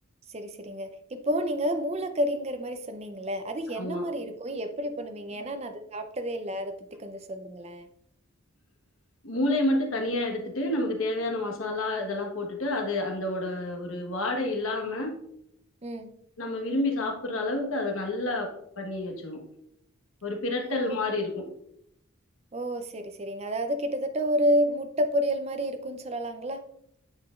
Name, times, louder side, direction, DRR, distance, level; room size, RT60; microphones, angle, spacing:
voice 1, 0.3-7.9 15.8-16.1 20.6-21.2 22.5-26.6, equal, 30° right, 8 dB, 0.5 m, -30 dB
voice 2, 3.7-4.1 9.2-15.1 16.4-18.5 18.8-19.4 20.2-21.5, left 2 dB, 70° left, 2 dB, 1.3 m, -29 dB
8.7 x 5.9 x 2.4 m, 0.73 s
head